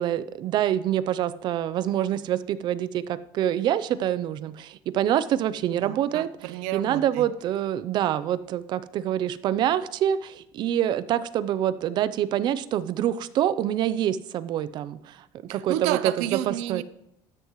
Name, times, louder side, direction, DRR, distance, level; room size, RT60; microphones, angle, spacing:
voice 1, 0.0-6.3 6.7-15.2 15.5-16.0 16.3-16.8, right 11 dB, 45° right, 15 dB, 0.6 m, -26 dB
voice 2, 5.7-7.3 15.5-16.8, right 13 dB, 80° right, 15 dB, 0.7 m, -31 dB
13.0 x 10.5 x 3.1 m, 0.78 s
cardioid pair, 155°, 11 cm